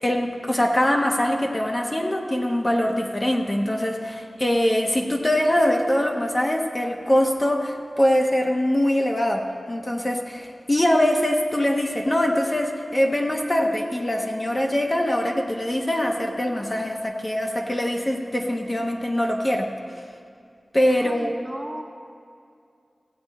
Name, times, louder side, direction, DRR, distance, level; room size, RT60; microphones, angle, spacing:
voice 1, 0.0-19.7 20.7-21.3, left 1 dB, 30° left, 1 dB, 1.1 m, -23 dB
voice 2, 20.9-21.8, right 1 dB, 10° right, 2 dB, 1.1 m, -35 dB
15.5 x 7.8 x 4.2 m, 2.4 s
wide cardioid pair, 60°, 0 cm